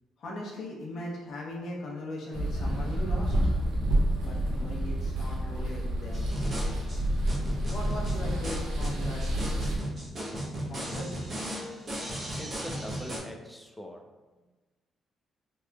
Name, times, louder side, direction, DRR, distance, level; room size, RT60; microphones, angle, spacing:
voice 1, 0.2-3.3 4.2-6.3 7.7-9.2 10.6-11.1, left 1 dB, 65° left, -2 dB, 0.6 m, -39 dB
sound 1, 2.3-9.8, right 1 dB, 85° right, 0.5 m, -29 dB
sound 2, 6.1-13.2, equal, 45° right, 0.7 m, -36 dB
voice 2, 12.4-14.0, equal, 5° left, 3 dB, 0.3 m, -42 dB
2.8 x 2.3 x 2.2 m, 1.2 s
cardioid pair, 90°, 0 cm